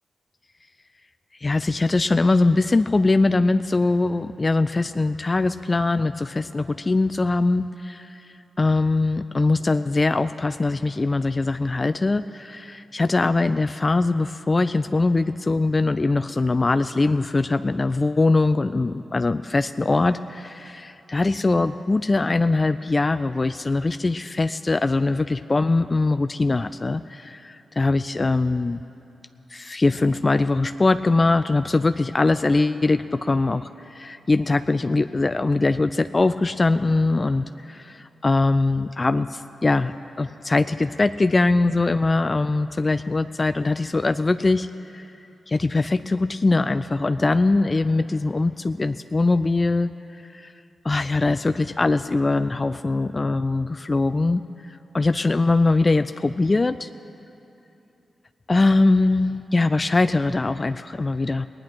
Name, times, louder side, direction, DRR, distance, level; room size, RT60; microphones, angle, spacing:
voice 1, 1.4-8.2 8.6-28.8 29.5-39.9 40.2-44.7 44.9-45.1 45.5-49.9 50.3-50.5 50.8-54.4 54.9-56.9 58.5-61.5, left 3 dB, 40° left, 11 dB, 0.4 m, -22 dB
19.0 x 10.5 x 6.1 m, 2.8 s
supercardioid pair, 40°, 0 cm